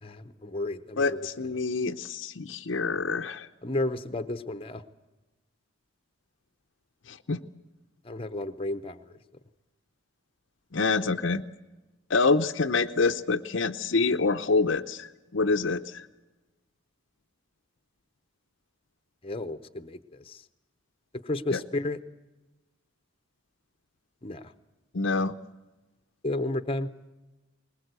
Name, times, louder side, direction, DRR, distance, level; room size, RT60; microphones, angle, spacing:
voice 1, 0.0-1.3 3.6-4.8 8.0-9.1 19.2-20.4 21.2-22.0 24.2-24.5 26.2-26.9, left 2 dB, 25° left, 10 dB, 0.9 m, -32 dB
voice 2, 1.0-3.5 7.1-7.4 10.7-11.4 12.1-16.1 21.5-21.6 24.9-25.3, left 4 dB, 65° left, 8 dB, 0.7 m, -26 dB
20.5 x 20.5 x 8.1 m, 1.1 s
head